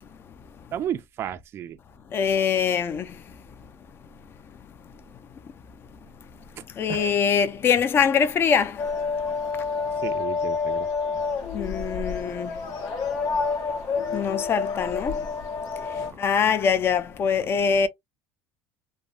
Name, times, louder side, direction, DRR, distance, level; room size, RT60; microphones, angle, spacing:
voice 1, 0.7-1.8 6.9-7.2 10.0-11.2 16.0-16.2, right 10 dB, 40° right, 0.3 m, -33 dB
voice 2, 2.1-3.0 6.8-8.8 11.5-12.5 14.1-15.1 16.2-17.9, left 7 dB, 35° left, 0.5 m, -23 dB
sound 1, 8.8-16.1, left 5 dB, 60° left, 1.2 m, -28 dB
3.4 x 2.0 x 2.4 m
supercardioid pair, 120°, 7 cm